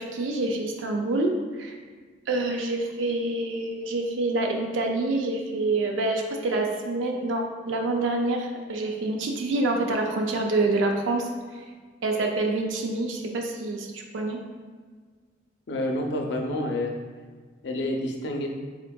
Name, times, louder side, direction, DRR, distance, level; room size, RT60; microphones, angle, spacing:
voice 1, 0.0-1.3 1.6-1.8 2.3-11.3 12.0-14.4, right 2 dB, 90° right, 2 dB, 0.4 m, -27 dB
voice 2, 15.7-16.9 17.6-18.5, left 1 dB, 65° left, 2 dB, 0.5 m, -28 dB
3.6 x 3.5 x 2.2 m, 1.5 s
head